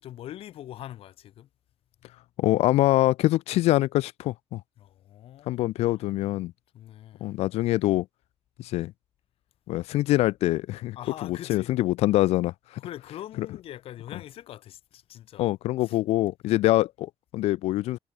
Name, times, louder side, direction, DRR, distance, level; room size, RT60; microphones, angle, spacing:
voice 1, 0.0-1.5 4.8-6.0 6.7-7.3 11.0-11.7 12.8-15.5 15.8-16.0, left 12 dB, 65° left, 2.5 m, -43 dB
voice 2, 2.4-4.6 5.5-6.5 7.2-8.1 8.6-8.9 9.7-11.0 11.2-12.8 13.4-13.5 15.4-18.0, left 16 dB, 85° left, 0.4 m, -24 dB
cardioid pair, 170°, 11 cm